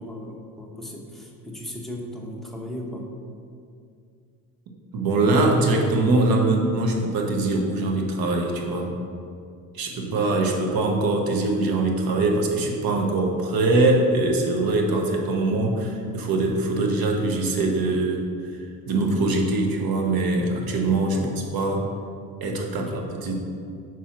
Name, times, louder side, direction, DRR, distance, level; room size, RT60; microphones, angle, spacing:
voice 1, 0.0-3.1 9.9-10.2 21.1-21.3 22.7-23.0, equal, ahead, -1 dB, 1.0 m, -36 dB
voice 2, 4.9-8.9 9.7-18.3 18.9-21.8 22.4-23.4, right 2 dB, 55° right, 1 dB, 1.2 m, -22 dB
4.6 x 4.2 x 5.8 m, 2.3 s
supercardioid pair, 100°, 43 cm